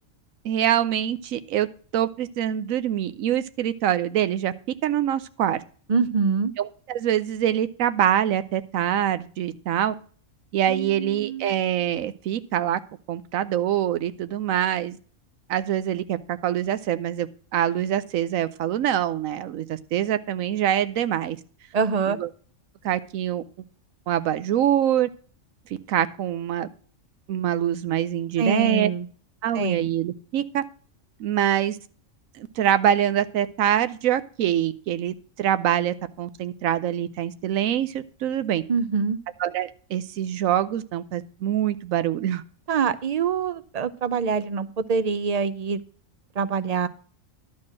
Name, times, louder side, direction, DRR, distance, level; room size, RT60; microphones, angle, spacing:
voice 1, 0.4-1.7 1.9-4.5 4.8-5.6 6.6-9.9 10.5-12.8 13.1-15.0 15.5-21.4 22.1-22.3 22.8-23.4 24.1-25.1 25.9-26.7 27.3-28.9 29.4-30.6 31.2-31.8 32.4-38.6 39.4-42.4, right 10 dB, 85° right, 13 dB, 1.1 m, -24 dB
voice 2, 5.9-6.5 10.7-11.5 21.7-22.2 28.4-29.1 29.5-29.9 38.7-39.2 42.7-45.8 46.4-46.9, right 5 dB, 50° right, 14 dB, 0.4 m, -25 dB
11.5 x 4.3 x 7.3 m, 0.43 s
omnidirectional pair, 1.4 m